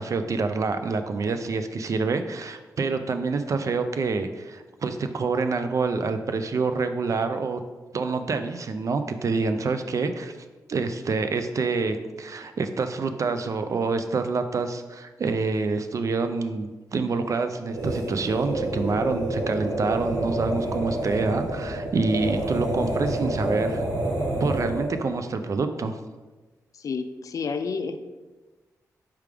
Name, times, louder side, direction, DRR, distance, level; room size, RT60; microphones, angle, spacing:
voice 1, 0.0-7.6 7.9-10.4 10.7-23.8 24.4-26.0, right 4 dB, 50° right, 8 dB, 0.4 m, -27 dB
sound 1, 17.7-25.0, right 1 dB, 80° right, 1.0 m, -28 dB
voice 2, 26.8-28.0, left 5 dB, 55° left, 10 dB, 0.3 m, -30 dB
4.6 x 3.4 x 3.3 m, 1.2 s
cardioid pair, 60°, 7 cm